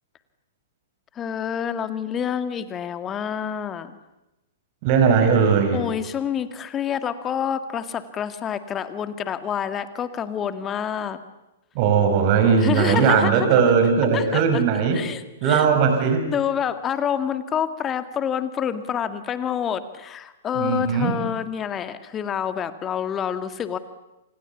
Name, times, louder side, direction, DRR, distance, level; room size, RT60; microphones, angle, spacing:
voice 1, 1.2-4.0 5.7-11.2 12.6-13.5 14.1-14.6 14.9-15.7 16.2-23.8, left 8 dB, 20° left, 11 dB, 1.9 m, -27 dB
voice 2, 4.8-5.8 11.7-15.0 15.4-16.3 20.5-21.2, right 6 dB, 40° right, 6 dB, 5.9 m, -19 dB
29.5 x 27.0 x 7.2 m, 0.97 s
figure-of-eight pair, 110°, 0 cm